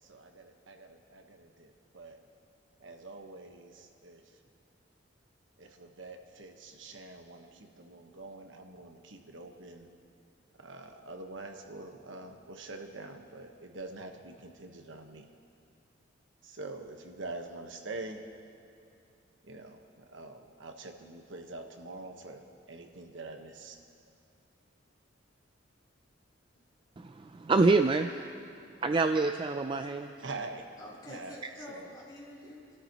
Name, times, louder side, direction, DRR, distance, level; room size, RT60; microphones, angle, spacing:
voice 1, 0.0-2.2 2.8-4.2 5.6-9.9 10.6-15.2 16.4-18.2 19.4-23.8 30.2-30.6 31.1-31.9, right 2 dB, 80° right, 4 dB, 1.2 m, -45 dB
voice 2, 27.0-28.1 28.8-30.1, right 3 dB, 25° right, 7 dB, 0.3 m, -26 dB
voice 3, 30.8-32.8, left 1 dB, 20° left, -7 dB, 3.4 m, -47 dB
28.5 x 13.0 x 3.0 m, 2.4 s
head